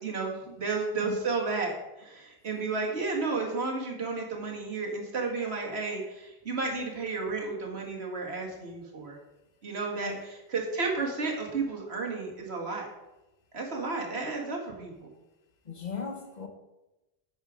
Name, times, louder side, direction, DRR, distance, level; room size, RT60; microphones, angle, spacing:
voice 1, 0.0-9.2 9.6-12.9 13.5-15.1, right 3 dB, 85° right, 2.1 m, -32 dB
voice 2, 15.6-16.5, left 6 dB, 45° left, 1.0 m, -38 dB
8.6 x 6.6 x 4.9 m
omnidirectional pair, 1.1 m